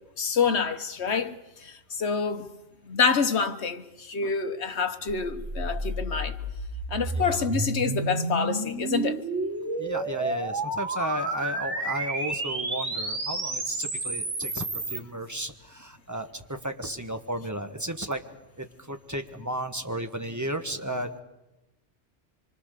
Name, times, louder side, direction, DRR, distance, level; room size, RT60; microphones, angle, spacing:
voice 1, 0.2-1.3 1.6-2.5 2.8-6.4 6.9-9.2, left 5 dB, 70° left, 1.5 m, -27 dB
sound 1, 5.1-15.0, right 2 dB, 90° right, 2.5 m, -31 dB
voice 2, 7.1-7.5 9.8-14.6 14.9-18.2 18.6-21.2, right 1 dB, 15° right, 1.4 m, -34 dB
25.5 x 24.5 x 6.8 m
omnidirectional pair, 1.2 m